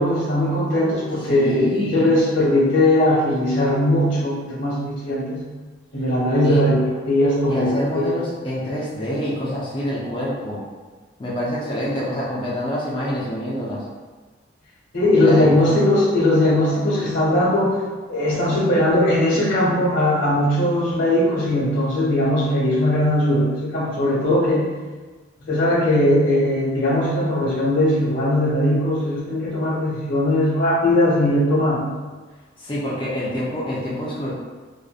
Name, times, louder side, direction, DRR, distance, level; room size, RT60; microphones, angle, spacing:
voice 1, 0.0-5.4 5.9-8.1 14.9-17.8 18.1-24.7 25.4-31.9, left 1 dB, 70° left, -8 dB, 1.0 m, -19 dB
voice 2, 1.2-2.1 6.4-6.6 7.5-10.6 11.2-13.8 15.2-15.9 32.6-34.3, equal, 25° left, -6 dB, 0.4 m, -26 dB
2.6 x 2.1 x 2.3 m, 1.3 s
head